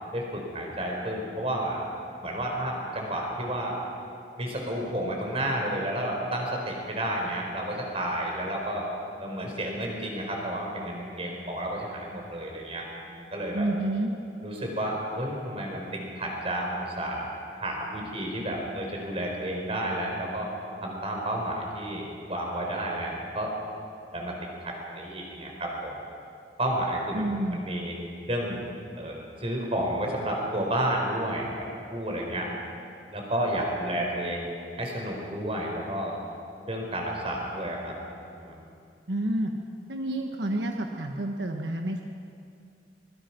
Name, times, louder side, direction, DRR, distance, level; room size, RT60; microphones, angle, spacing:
voice 1, 0.1-1.8 2.2-3.8 4.4-8.9 9.2-13.7 14.4-20.5 20.8-23.5 24.1-25.9 26.6-27.3 27.5-27.9 28.3-28.6 29.0-31.5 31.9-32.5 33.1-34.4 34.8-36.2 36.6-37.9 38.2-38.5, right 1 dB, 35° right, 0 dB, 4.8 m, -31 dB
voice 2, 13.5-14.1 27.1-27.6 39.1-39.5 39.9-42.0, right 1 dB, 80° right, 2 dB, 1.4 m, -29 dB
24.5 x 22.0 x 6.1 m, 2.5 s
head